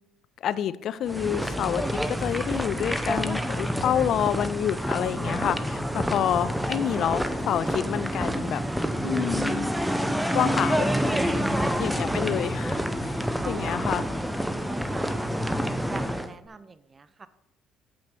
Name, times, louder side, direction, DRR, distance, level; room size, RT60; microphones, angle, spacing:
voice 1, 0.4-8.6 9.0-9.7 10.3-10.9 11.2-14.0, left 10 dB, 60° left, 16 dB, 0.5 m, -28 dB
sound 1, 1.1-16.3, equal, 5° right, 0.9 m, -28 dB
voice 2, 13.4-13.9 14.7-15.6 15.9-17.3, right 4 dB, 30° right, 14 dB, 0.6 m, -43 dB
8.5 x 7.7 x 4.4 m, 0.83 s
hypercardioid pair, 65°, 0 cm